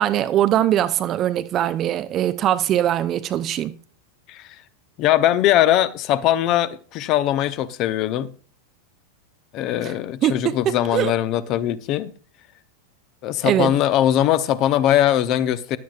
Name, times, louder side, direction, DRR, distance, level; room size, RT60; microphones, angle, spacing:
voice 1, 0.0-3.8 9.8-9.9 10.2-11.1 13.4-13.7, right 11 dB, 30° right, 0.6 m, -21 dB
voice 2, 5.0-8.3 9.5-12.1 13.2-15.8, left 12 dB, 40° left, 0.8 m, -20 dB
15.0 x 11.5 x 2.4 m
figure-of-eight pair, 90°, 0 cm